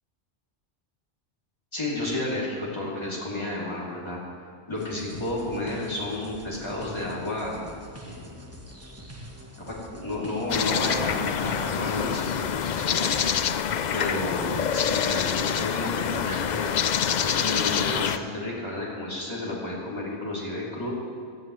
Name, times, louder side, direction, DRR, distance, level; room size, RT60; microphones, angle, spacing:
voice 1, 1.7-4.2 4.7-7.7 8.0-8.4 9.7-13.2 13.9-16.8 17.2-20.9, left 1 dB, 25° left, -6 dB, 2.9 m, -31 dB
sound 1, 4.8-13.4, equal, 15° right, 1.1 m, -45 dB
sound 2, 10.5-18.2, left 8 dB, 60° left, 0.5 m, -26 dB
18.5 x 13.0 x 3.2 m, 2.5 s
omnidirectional pair, 1.2 m